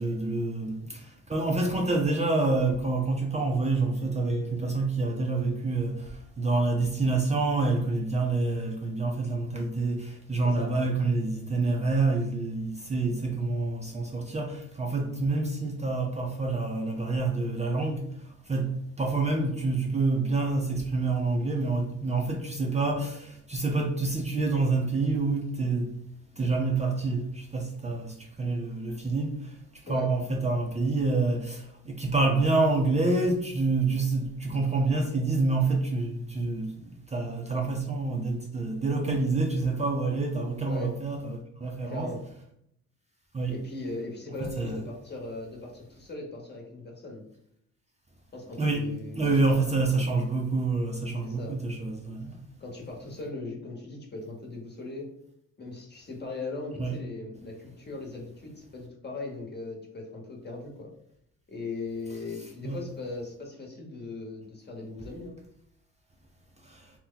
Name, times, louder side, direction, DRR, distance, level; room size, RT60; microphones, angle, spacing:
voice 1, 0.0-25.9 26.4-42.1 43.3-43.6 44.4-44.8 48.6-52.4 56.8-57.0 62.6-62.8 66.6-66.9, right 3 dB, 20° right, 0.5 m, -27 dB
voice 2, 40.6-41.0 41.8-42.2 43.5-47.3 48.3-49.7 51.2-51.6 52.6-55.1 55.6-60.9 61.5-65.4, left 3 dB, 35° left, 1.1 m, -39 dB
2.8 x 2.1 x 3.8 m
cardioid pair, 90°, 30 cm